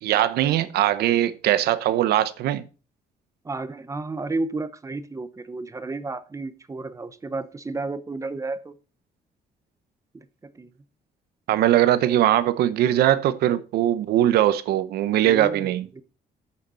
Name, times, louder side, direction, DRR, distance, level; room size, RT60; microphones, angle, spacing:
voice 1, 0.0-2.7 11.5-15.8, right 12 dB, 90° right, 0.8 m, -21 dB
voice 2, 3.4-8.7 10.1-10.7 15.2-16.0, right 3 dB, 20° right, 0.8 m, -32 dB
8.6 x 6.5 x 5.5 m
cardioid pair, 115°, 16 cm